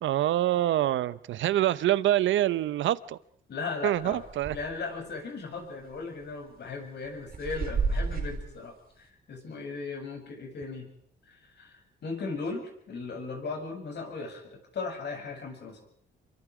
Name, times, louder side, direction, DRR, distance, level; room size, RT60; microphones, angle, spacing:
voice 1, 0.0-3.2 3.8-4.6, right 13 dB, 75° right, 17 dB, 0.9 m, -25 dB
voice 2, 3.5-10.9 11.3-15.8, left 4 dB, 60° left, 2 dB, 7.5 m, -37 dB
sound 1, 4.0-4.7 5.1-5.2 5.9-6.2 6.8-8.5, right 4 dB, 50° right, 4.4 m, -31 dB
27.5 x 24.0 x 5.0 m, 0.64 s
cardioid pair, 90°, 20 cm